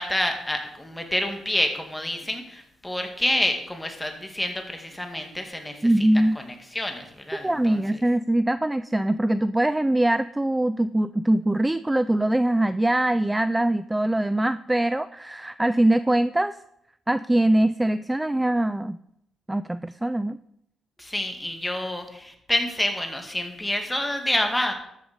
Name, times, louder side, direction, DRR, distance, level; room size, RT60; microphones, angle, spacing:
voice 1, 0.0-6.2 6.7-7.8 21.0-24.7, left 1 dB, 10° left, 5 dB, 2.1 m, -28 dB
voice 2, 5.8-6.4 7.4-16.6 17.1-19.0 19.5-20.4, right 1 dB, 10° right, 14 dB, 0.3 m, -22 dB
13.0 x 7.3 x 5.2 m, 0.79 s
cardioid pair, 90°, 0 cm